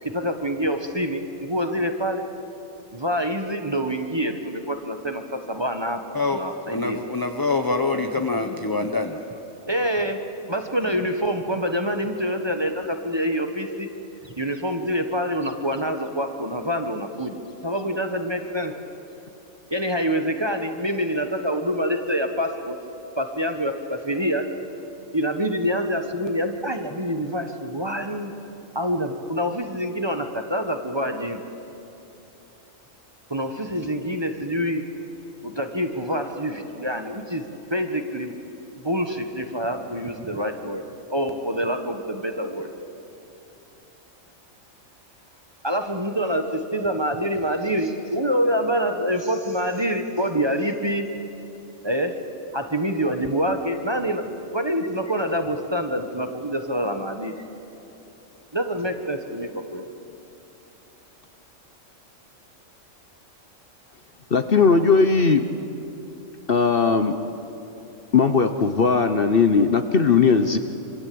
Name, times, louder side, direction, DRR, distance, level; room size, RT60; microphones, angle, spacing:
voice 1, 0.0-2.3 2.9-6.0 6.3-7.0 9.7-10.2 10.5-13.9 14.2-18.7 19.7-22.8 23.2-24.5 25.1-28.3 28.7-31.4 33.3-34.8 35.4-38.3 38.7-40.8 41.1-42.7 45.6-51.1 51.8-52.1 52.5-54.2 54.5-57.4 58.5-59.8, equal, 20° right, 5 dB, 1.4 m, -26 dB
voice 2, 6.1-9.2, left 3 dB, 20° left, 5 dB, 0.9 m, -25 dB
voice 3, 64.3-65.5 66.5-67.2 68.1-70.6, left 5 dB, 45° left, 8 dB, 1.1 m, -18 dB
26.5 x 25.0 x 8.7 m, 2.9 s
omnidirectional pair, 1.4 m